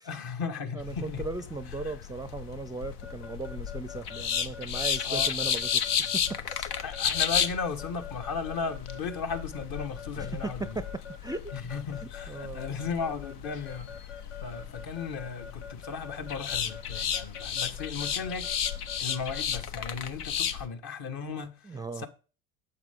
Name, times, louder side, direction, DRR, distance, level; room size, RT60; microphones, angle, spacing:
voice 1, 0.0-1.2 1.8-1.9 5.0-5.3 6.8-10.8 11.5-14.1 14.4-18.5 19.0-22.1, left 5 dB, 55° left, 1.5 m, -36 dB
voice 2, 0.7-6.8 10.2-10.9 11.2-11.5 12.3-12.7 21.6-22.1, right 3 dB, 10° right, 0.4 m, -37 dB
sound 1, 0.8-20.7, left 8 dB, 90° left, 0.8 m, -33 dB
Keyboard (musical) / Alarm, 3.0-19.6, left 6 dB, 70° left, 1.1 m, -45 dB
8.1 x 6.9 x 3.6 m
hypercardioid pair, 70°, 45 cm